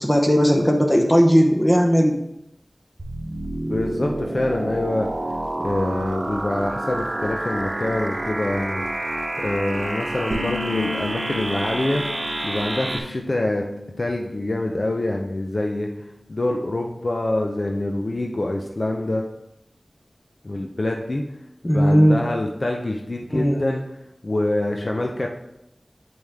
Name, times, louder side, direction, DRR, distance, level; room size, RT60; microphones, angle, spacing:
voice 1, 0.0-2.2 21.6-22.2 23.3-23.7, equal, 20° left, 2 dB, 0.9 m, -17 dB
sound 1, 3.0-13.0, right 1 dB, 60° right, 0.9 m, -28 dB
voice 2, 3.7-5.1 5.6-8.8 9.4-12.0 12.4-13.7 14.0-15.9 16.3-19.2 20.4-21.2 21.7-23.8 24.2-25.3, left 1 dB, 60° left, 1 dB, 0.7 m, -25 dB
sound 2, 10.3-15.7, left 5 dB, 90° right, 0.8 m, -38 dB
7.9 x 5.4 x 3.5 m, 0.85 s
wide cardioid pair, 45°, 0 cm